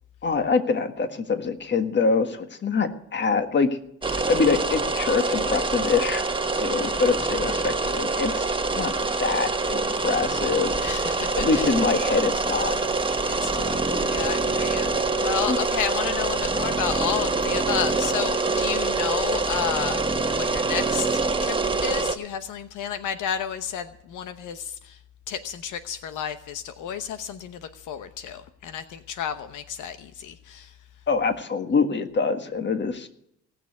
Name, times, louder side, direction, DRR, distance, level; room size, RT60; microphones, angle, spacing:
voice 1, 0.2-3.8 4.1-6.2 6.6-8.5 8.7-8.9 9.2-10.7 11.4-12.8 15.5-15.6 31.1-33.1, left 4 dB, 35° left, 8 dB, 1.7 m, -24 dB
sound 1, 4.0-22.2, right 3 dB, 15° right, 1.2 m, -25 dB
voice 2, 10.8-11.8 13.2-25.0 25.3-30.8, left 9 dB, 80° left, 10 dB, 1.0 m, -32 dB
18.0 x 6.9 x 9.5 m, 0.72 s
cardioid pair, 90°, 30 cm